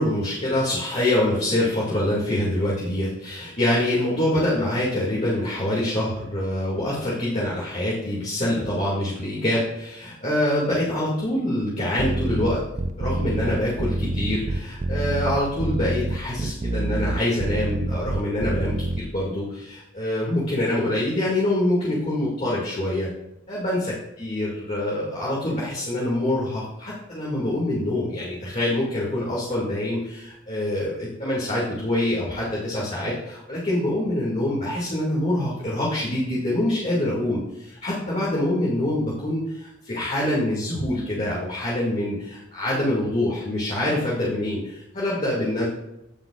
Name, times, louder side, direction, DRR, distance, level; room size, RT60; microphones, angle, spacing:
voice 1, 0.0-12.6 13.0-23.1 23.5-45.7, left 1 dB, 35° left, -6 dB, 2.1 m, -25 dB
sound 1, 12.0-19.0, right 2 dB, 40° right, 0.5 m, -26 dB
15.5 x 5.8 x 2.4 m, 0.88 s
head